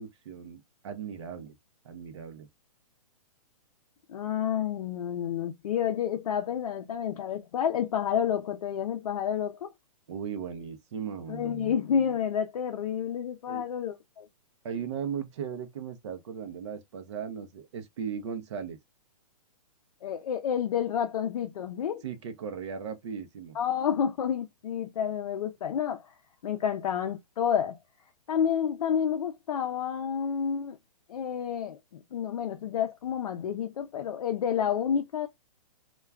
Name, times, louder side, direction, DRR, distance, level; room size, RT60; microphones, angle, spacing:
voice 1, 0.0-1.6 1.8-2.5 10.1-11.8 13.5-13.6 14.6-18.8 22.0-23.6, right 7 dB, 50° right, 0.6 m, -37 dB
voice 2, 4.1-9.7 11.3-14.3 20.0-22.0 23.5-26.1 26.4-27.8 28.3-30.8 31.1-35.3, left 8 dB, 70° left, 0.5 m, -29 dB
2.2 x 2.2 x 3.3 m
hypercardioid pair, 165°, 19 cm